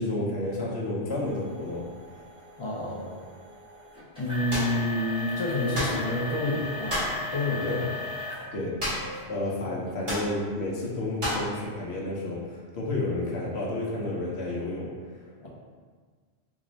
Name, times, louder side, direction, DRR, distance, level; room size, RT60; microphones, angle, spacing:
voice 1, 0.0-1.9 7.7-7.9 8.5-8.8 9.3-15.5, left 2 dB, 75° left, -3 dB, 1.0 m, -31 dB
sound 1, 1.1-8.5 8.9-9.3 9.9-10.0 10.6-10.7, left 3 dB, 5° right, 1.1 m, -38 dB
voice 2, 2.6-3.2 4.2-7.9 15.4-15.5, left 1 dB, 35° left, -5 dB, 0.4 m, -29 dB
sound 2, 4.5-4.8 5.7-6.0 6.9-7.2 8.8-9.2 9.5-9.6 10.1-10.3 11.2-11.5, equal, 65° right, 1.7 m, -30 dB
3.6 x 2.6 x 3.1 m, 1.5 s
omnidirectional pair, 1.1 m